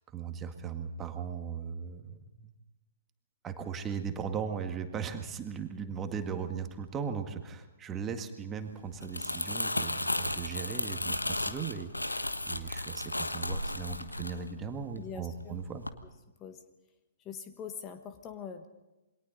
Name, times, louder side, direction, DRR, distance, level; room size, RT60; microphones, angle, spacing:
voice 1, 0.1-2.5 3.4-15.9, right 6 dB, 15° right, 6 dB, 1.9 m, -38 dB
Crumpling crinkling, 8.9-15.2 15.6-15.9, left 1 dB, 80° left, 1.4 m, -34 dB
voice 2, 15.0-15.6 16.4-16.6 17.2-18.7, left 7 dB, 20° left, 8 dB, 1.5 m, -43 dB
28.0 x 23.0 x 4.1 m, 1.0 s
figure-of-eight pair, 120°, 0 cm